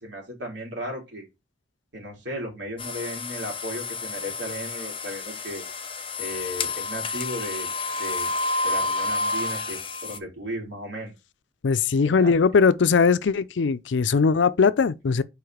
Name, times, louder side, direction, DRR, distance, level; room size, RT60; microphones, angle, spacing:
voice 1, 0.0-1.3 1.9-5.6 6.2-7.7 8.0-8.3 8.6-11.1 12.0-12.4, equal, 65° right, 3.6 m, -35 dB
sound 1, 2.8-10.2, left 3 dB, 30° left, 0.8 m, -30 dB
voice 2, 11.6-15.2, left 5 dB, 75° left, 0.5 m, -20 dB
4.9 x 4.8 x 5.0 m
head